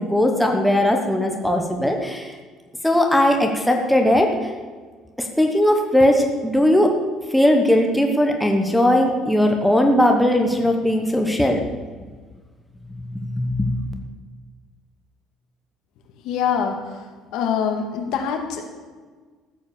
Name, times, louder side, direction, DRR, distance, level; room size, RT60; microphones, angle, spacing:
voice 1, 0.0-2.4 2.8-4.5 5.2-6.9 7.3-11.6 13.1-13.8, left 1 dB, ahead, 2 dB, 1.0 m, -19 dB
voice 2, 16.2-17.0 17.3-18.6, left 7 dB, 65° left, 4 dB, 2.0 m, -24 dB
14.0 x 7.8 x 7.0 m, 1.5 s
cardioid pair, 175°, 0 cm